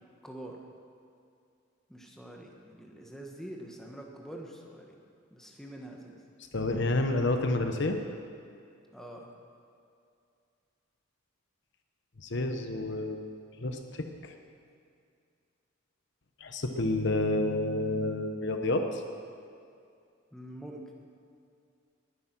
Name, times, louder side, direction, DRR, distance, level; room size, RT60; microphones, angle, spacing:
voice 1, 0.2-0.6 1.9-5.0 5.3-6.2 8.9-9.3 20.3-20.8, right 1 dB, ahead, 0 dB, 1.5 m, -45 dB
voice 2, 6.5-8.0 12.2-13.2 13.6-14.3 16.4-19.0, left 2 dB, 55° left, 5 dB, 1.0 m, -29 dB
19.5 x 9.6 x 6.2 m, 2.4 s
head